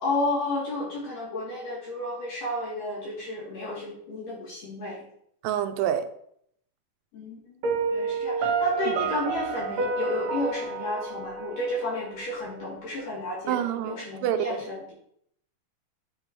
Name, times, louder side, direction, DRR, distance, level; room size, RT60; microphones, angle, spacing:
voice 1, 0.0-5.0 7.1-7.5 7.9-13.6 13.8-14.9, left 2 dB, 75° left, -7 dB, 4.5 m, -32 dB
voice 2, 5.4-6.0 8.9-9.1 13.5-14.4, right 10 dB, 90° right, 9 dB, 2.3 m, -27 dB
Piano, 7.6-12.6, right 4 dB, 65° right, 1.8 m, -30 dB
8.6 x 5.3 x 3.2 m, 0.70 s
omnidirectional pair, 3.8 m